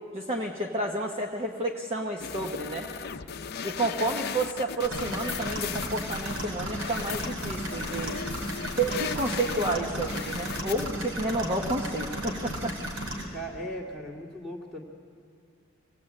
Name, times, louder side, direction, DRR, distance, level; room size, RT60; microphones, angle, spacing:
voice 1, 0.1-2.9 3.6-8.2 8.8-12.8, right 2 dB, 30° right, 0 dB, 1.2 m, -30 dB
sound 1, 2.2-10.9, left 7 dB, 50° left, 0.6 m, -37 dB
Bubble Loop, 4.8-13.2, equal, 80° right, 4.0 m, -35 dB
voice 2, 13.3-14.8, equal, 5° right, -6 dB, 2.3 m, -37 dB
25.0 x 17.5 x 8.7 m, 2.2 s
head